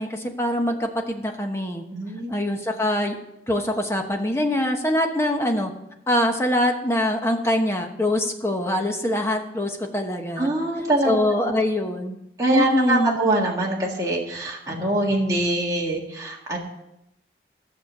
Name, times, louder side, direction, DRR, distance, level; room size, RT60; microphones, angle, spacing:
voice 1, 0.0-1.8 2.3-3.2 3.5-5.7 6.1-10.5 11.1-12.2 12.5-13.2, left 1 dB, 15° left, 3 dB, 1.0 m, -24 dB
voice 2, 1.9-2.4 10.4-11.5 12.4-16.6, right 1 dB, 20° right, -3 dB, 1.7 m, -24 dB
13.5 x 6.5 x 6.5 m, 0.84 s
head